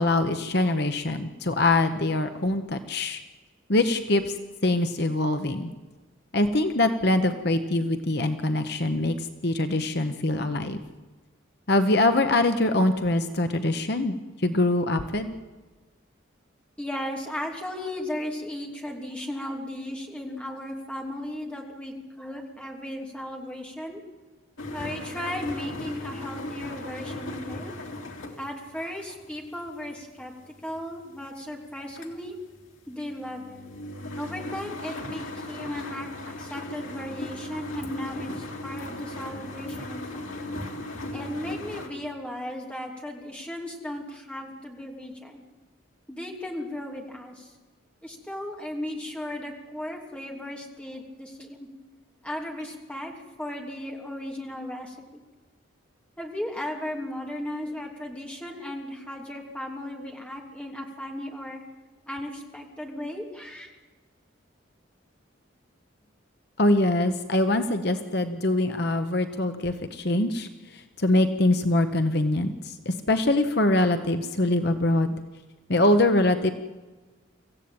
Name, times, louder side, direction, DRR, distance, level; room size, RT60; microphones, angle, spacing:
voice 1, 0.0-3.2 3.7-4.3 4.6-5.7 6.3-10.8 11.7-14.2 14.4-15.3 66.6-75.1 75.7-76.5, left 2 dB, 50° left, 8 dB, 1.1 m, -23 dB
voice 2, 16.8-24.0 24.7-27.7 28.4-32.4 32.9-33.6 34.2-36.1 36.4-40.3 41.1-45.4 46.1-47.5 48.0-51.7 52.2-53.1 53.4-55.2 56.2-61.6 62.1-63.7, left 1 dB, 5° left, 0 dB, 3.0 m, -36 dB
sound 1, 24.6-31.2 31.7-41.9, left 1 dB, 80° left, 3.2 m, -37 dB
26.0 x 15.0 x 8.9 m, 1.3 s
head